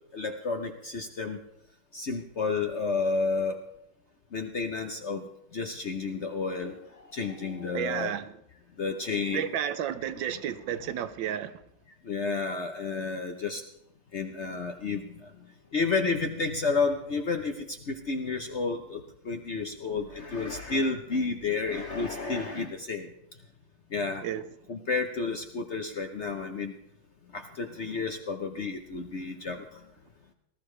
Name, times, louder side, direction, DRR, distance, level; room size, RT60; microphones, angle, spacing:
voice 1, 0.1-1.4 1.9-3.6 4.3-8.1 8.8-9.5 12.0-13.6 14.1-15.3 15.7-23.1 23.9-24.2 24.7-26.8 27.3-29.8, left 4 dB, 50° left, 0.9 m, -31 dB
voice 2, 7.7-8.3 9.3-11.6 24.2-24.5, right 9 dB, 75° right, 1.4 m, -32 dB
18.5 x 13.5 x 3.3 m
omnidirectional pair, 2.1 m